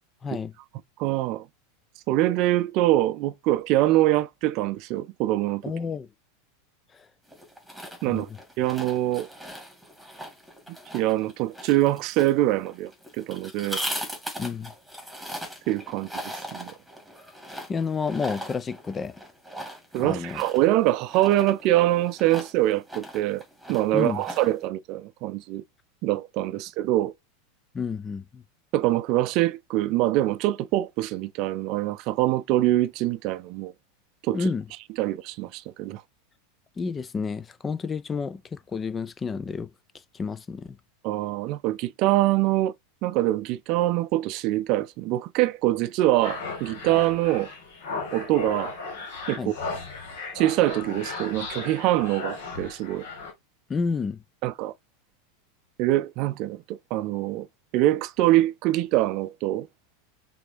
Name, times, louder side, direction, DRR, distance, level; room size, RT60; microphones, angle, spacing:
voice 1, 0.2-0.5 5.6-6.1 8.1-8.2 14.4-14.7 17.7-19.2 20.0-20.4 23.9-24.2 27.7-28.4 34.3-34.6 36.8-39.7 40.1-40.8 49.4-49.5 53.7-54.2, left 5 dB, 20° left, 0.4 m, -30 dB
voice 2, 1.0-1.4 2.1-5.6 8.0-8.3 8.6-9.3 10.9-12.9 13.2-13.8 15.7-16.1 16.5-16.7 19.9-23.4 23.7-25.6 26.0-27.1 28.7-33.7 34.3-34.4 35.0-36.0 41.0-42.7 43.0-47.5 48.1-48.7 49.3-49.5 50.3-53.1 54.4-54.7 55.8-57.5 57.7-59.7, right 15 dB, 50° right, 0.4 m, -24 dB
sound 1, 7.3-24.7, equal, 5° left, 2.2 m, -39 dB
sound 2, 46.2-53.3, left 3 dB, 65° left, 1.8 m, -36 dB
5.9 x 2.7 x 2.7 m
figure-of-eight pair, 85°, 0 cm